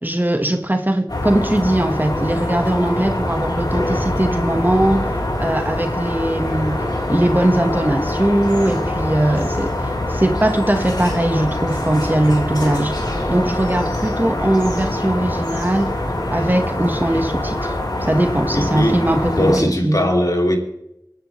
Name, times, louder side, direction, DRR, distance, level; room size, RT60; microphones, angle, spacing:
voice 1, 0.0-5.1 5.4-12.9 13.3-16.0 16.3-20.1, right 1 dB, 25° right, 1.4 m, -20 dB
sound 1, 1.1-19.6, left 1 dB, 80° left, 3.7 m, -24 dB
voice 2, 18.5-19.1 19.4-20.6, left 1 dB, 60° left, 2.7 m, -19 dB
25.0 x 10.5 x 3.2 m
wide cardioid pair, 45°, 7 cm